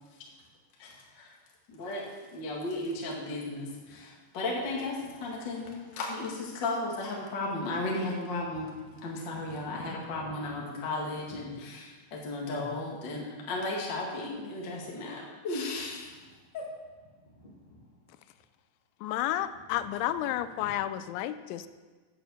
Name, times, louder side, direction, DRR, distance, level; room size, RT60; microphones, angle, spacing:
voice 1, 0.8-1.3 1.7-8.7 9.0-16.1 16.5-16.6, left 2 dB, 65° left, -2 dB, 1.1 m, -35 dB
voice 2, 5.0-6.0 8.5-9.1 9.4-10.6 11.3-11.6 16.1-16.4 17.2-17.9 20.6-20.8, equal, 15° left, -6 dB, 2.0 m, -52 dB
voice 3, 19.0-21.7, left 12 dB, 85° left, 12 dB, 3.0 m, -31 dB
9.1 x 9.0 x 7.0 m, 1.4 s
omnidirectional pair, 5.3 m